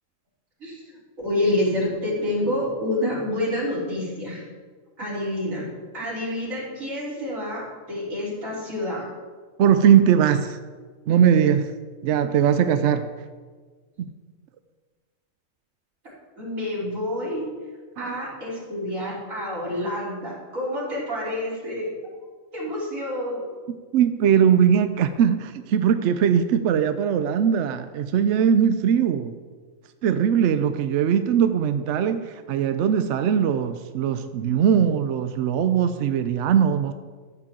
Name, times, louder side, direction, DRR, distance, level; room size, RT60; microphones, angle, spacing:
voice 1, 0.6-0.9 1.2-4.4 5.0-5.7 5.9-7.6 7.9-9.1 9.8-9.9 16.4-17.5 18.0-21.9 22.5-23.5, left 1 dB, 85° right, -7 dB, 3.9 m, -28 dB
voice 2, 9.6-10.6 11.1-11.7 12.0-13.1 14.0-14.1 18.0-18.2 19.8-19.9 23.9-29.3 30.0-36.9, right 8 dB, 70° right, 9 dB, 0.8 m, -20 dB
14.0 x 7.4 x 3.7 m, 1.5 s
omnidirectional pair, 1.4 m